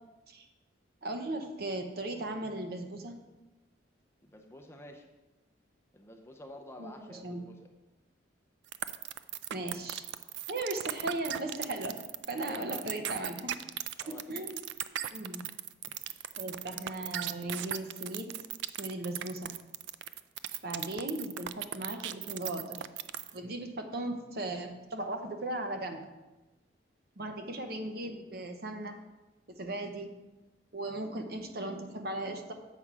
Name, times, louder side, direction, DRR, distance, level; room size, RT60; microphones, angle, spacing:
voice 1, 1.0-3.2 6.8-7.5 9.5-10.0 10.5-12.0 12.3-13.6 14.1-14.6 15.1-15.4 16.4-18.3 18.8-19.5 20.6-22.8 23.3-26.1 27.2-29.0 29.5-30.1 30.7-32.5, right 1 dB, 55° right, 5 dB, 0.8 m, -37 dB
voice 2, 4.2-5.1 5.9-7.7 12.4-12.9 13.7-14.5, left 1 dB, 15° left, 2 dB, 0.6 m, -49 dB
sound 1, 8.7-23.4, right 12 dB, 70° right, 0.3 m, -37 dB
7.4 x 5.4 x 4.7 m, 1.1 s
head